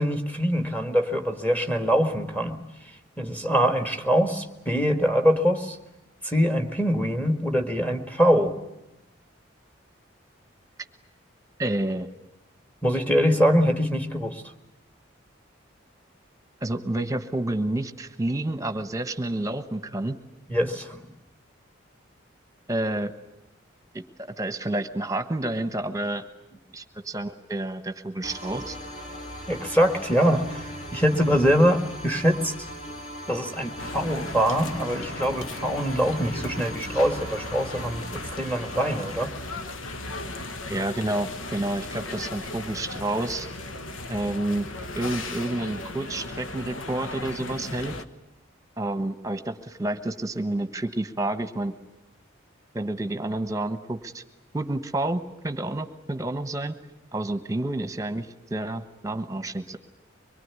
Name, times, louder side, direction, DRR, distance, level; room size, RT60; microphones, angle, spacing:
voice 1, 0.0-2.6 3.2-5.8 6.2-8.5 12.8-14.4 20.5-21.0 29.5-30.6 30.9-32.5 33.3-39.3, equal, 10° left, 5 dB, 1.8 m, -23 dB
voice 2, 11.6-12.1 16.6-20.2 22.7-23.1 23.9-24.0 24.4-26.2 26.7-28.8 40.7-43.5 44.1-44.7 44.9-47.9 48.8-51.7 52.7-54.2 54.5-56.8 57.1-59.8, right 1 dB, 15° right, 9 dB, 1.2 m, -29 dB
sound 1, 28.2-39.2, equal, 40° left, 3.0 m, -39 dB
sound 2, 33.8-48.0, left 2 dB, 85° left, 1.3 m, -36 dB
24.0 x 22.5 x 9.7 m, 0.91 s
head